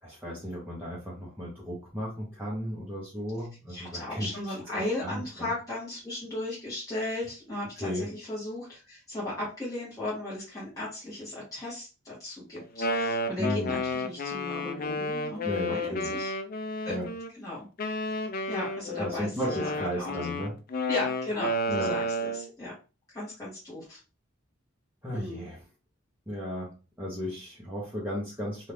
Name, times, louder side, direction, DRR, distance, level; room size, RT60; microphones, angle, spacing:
voice 1, 0.0-5.5 7.8-8.1 13.4-13.8 15.4-16.2 16.9-17.1 19.0-20.5 21.7-22.0 25.0-25.6 26.3-28.7, equal, 10° right, -7 dB, 0.7 m, -35 dB
voice 2, 3.7-16.3 16.8-16.9 17.4-17.7 18.5-19.3 19.6-20.1 20.9-22.0 22.3-22.7 23.1-24.0 25.1-25.4, left 1 dB, 15° left, -8 dB, 1.0 m, -36 dB
Wind instrument woodwind instrument, 12.6-17.3 17.8-22.5, left 1 dB, 40° left, 0.3 m, -31 dB
2.7 x 2.3 x 3.3 m, 0.32 s
head